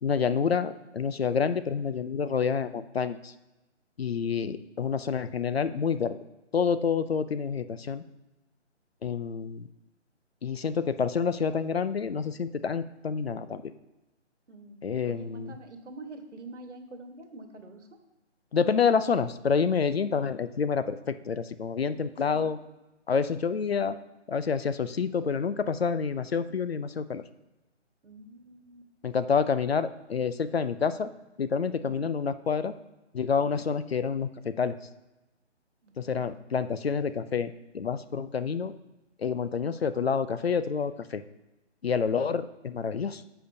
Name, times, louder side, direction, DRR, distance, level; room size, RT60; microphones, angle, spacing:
voice 1, 0.0-3.3 4.0-6.2 6.5-8.0 9.0-9.7 10.4-13.7 14.8-15.5 18.5-22.6 23.1-24.0 24.3-27.2 29.0-31.1 31.4-32.7 33.1-34.8 36.0-38.7 39.2-41.2 41.8-43.4, left 6 dB, 55° left, 13 dB, 0.5 m, -28 dB
voice 2, 14.5-17.9 22.3-22.5 28.0-28.9 31.9-32.1 33.4-33.7 35.8-36.5, right 2 dB, 70° right, 6 dB, 1.4 m, -46 dB
10.0 x 7.0 x 2.7 m, 1.0 s
hypercardioid pair, 170°, 36 cm